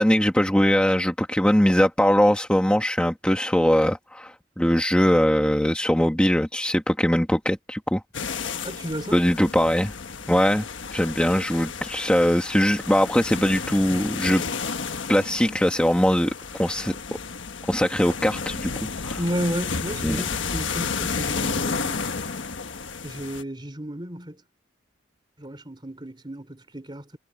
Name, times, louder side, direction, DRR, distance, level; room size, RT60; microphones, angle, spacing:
voice 1, 0.0-8.0 9.1-9.9 10.3-14.4 15.1-16.3 16.6-17.0 17.7-19.2 20.0-20.2, equal, 5° left, 1.3 m, -21 dB
sound 1, 8.1-23.4, left 5 dB, 80° left, 1.4 m, -32 dB
voice 2, 8.6-9.2 19.2-22.0 23.0-24.4 25.4-27.2, equal, 25° right, 3.1 m, -32 dB
head